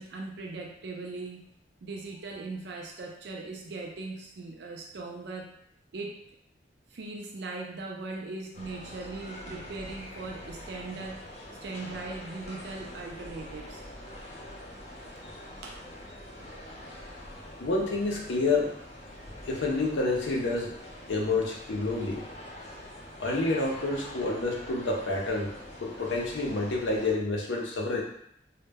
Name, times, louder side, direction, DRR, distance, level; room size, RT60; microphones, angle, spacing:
voice 1, 0.0-1.5 1.8-5.5 5.9-6.2 6.9-11.2 11.6-13.8 15.6-15.8 16.4-16.5, right 3 dB, 65° right, 0 dB, 0.4 m, -39 dB
sound 1, 8.5-27.1, left 1 dB, 35° left, 0.5 m, -45 dB
voice 2, 17.6-18.7 19.4-20.7 21.1-22.2 23.2-25.5 25.8-28.0, left 3 dB, 85° left, -1 dB, 0.5 m, -28 dB
2.1 x 2.0 x 3.3 m, 0.72 s
head